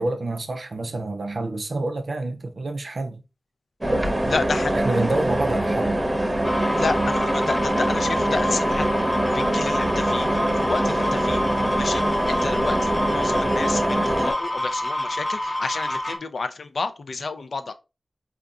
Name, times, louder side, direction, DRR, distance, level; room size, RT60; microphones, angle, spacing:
voice 1, 0.0-3.2 4.7-6.0, right 2 dB, 70° right, 0.5 m, -28 dB
sound 1, 3.8-14.3, right 1 dB, 25° right, 0.7 m, -24 dB
voice 2, 4.2-4.7 6.8-8.9 9.3-11.4 11.8-17.7, left 4 dB, 80° left, 0.3 m, -30 dB
sound 2, 6.4-16.2, left 1 dB, 40° left, 0.6 m, -27 dB
3.8 x 2.3 x 2.3 m
cardioid pair, 45°, 0 cm